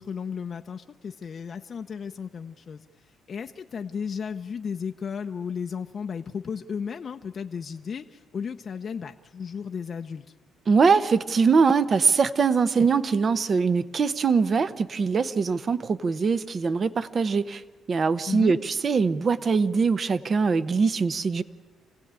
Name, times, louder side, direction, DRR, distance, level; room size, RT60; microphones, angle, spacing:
voice 1, 0.0-2.8 3.3-10.2 18.3-18.6, left 6 dB, 50° left, 6 dB, 0.7 m, -34 dB
voice 2, 10.7-17.6 17.9-21.4, right 5 dB, 45° right, 14 dB, 0.9 m, -22 dB
27.0 x 16.5 x 8.9 m, 1.4 s
cardioid pair, 90°, 0 cm